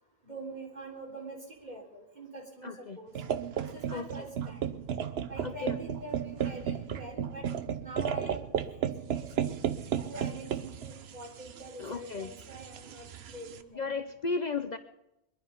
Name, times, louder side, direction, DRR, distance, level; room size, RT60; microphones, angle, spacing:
voice 1, 0.2-3.1 3.6-4.8 5.3-7.5 7.8-9.5 10.0-13.9, right 2 dB, 45° right, -1 dB, 3.8 m, -45 dB
voice 2, 2.6-3.0 3.9-4.3 5.4-5.8 11.8-12.3 13.7-14.8, left 4 dB, 45° left, 9 dB, 0.8 m, -34 dB
sound 1, 3.1-13.6, right 8 dB, 80° right, 1.0 m, -34 dB
22.0 x 11.5 x 5.4 m, 0.86 s
omnidirectional pair, 1.0 m